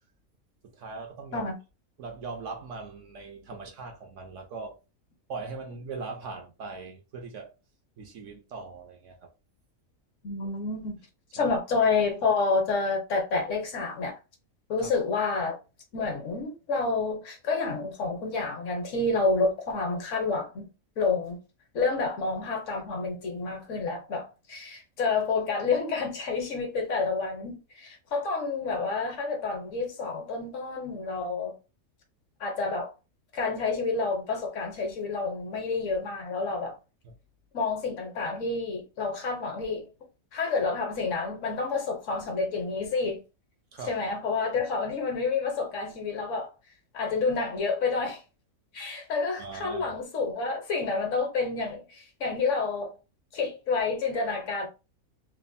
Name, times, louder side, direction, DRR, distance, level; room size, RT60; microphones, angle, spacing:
voice 1, 0.6-1.5 2.0-4.8 5.3-7.5 8.0-9.3 11.4-11.5 14.8-14.9 37.0-37.1 43.7-44.0 49.4-49.9, right 4 dB, 65° right, 0.9 m, -40 dB
voice 2, 10.2-11.0 11.3-14.2 14.7-15.6 15.9-20.7 21.0-21.4 21.7-31.6 32.4-32.9 33.3-36.8 37.5-39.9 40.3-43.2 43.9-46.5 46.9-48.2 48.7-53.0 53.3-54.7, left 4 dB, 60° left, 1.0 m, -29 dB
3.1 x 2.0 x 2.5 m
omnidirectional pair, 1.5 m